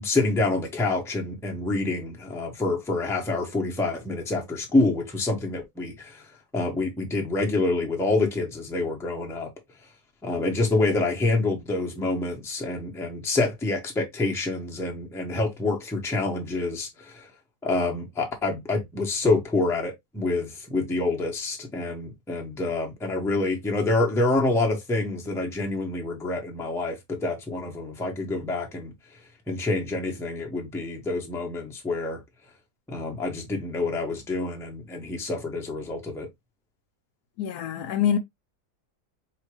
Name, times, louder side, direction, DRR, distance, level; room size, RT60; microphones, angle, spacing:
voice 1, 0.0-6.2 6.5-9.5 10.2-17.3 17.6-28.9 29.5-32.2 32.9-36.3, left 2 dB, ahead, 0.7 m, -27 dB
voice 2, 37.4-38.2, left 9 dB, 75° left, 1.0 m, -25 dB
4.8 x 2.8 x 3.0 m
omnidirectional pair, 1.8 m